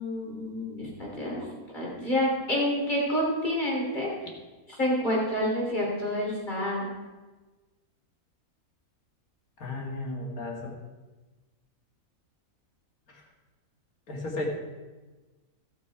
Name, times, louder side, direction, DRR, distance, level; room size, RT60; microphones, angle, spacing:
voice 1, 0.0-1.4 1.7-4.1 4.8-6.9, equal, 30° left, -4 dB, 3.3 m, -28 dB
voice 2, 9.6-10.7 13.1-13.2 14.1-14.5, left 2 dB, 75° left, -1 dB, 2.5 m, -34 dB
15.5 x 6.2 x 4.8 m, 1.2 s
omnidirectional pair, 1.5 m